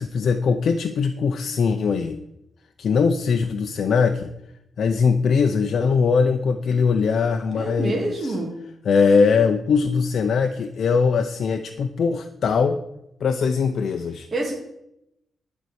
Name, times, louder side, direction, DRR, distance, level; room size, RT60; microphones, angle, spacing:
voice 1, 0.0-2.2 2.8-4.3 4.8-8.4 8.8-12.8 13.2-14.3, left 5 dB, 65° left, 6 dB, 0.6 m, -21 dB
voice 2, 7.5-8.6 14.3-14.5, right 2 dB, 30° right, -2 dB, 2.3 m, -27 dB
11.0 x 4.5 x 7.9 m, 0.83 s
wide cardioid pair, 130°, 0 cm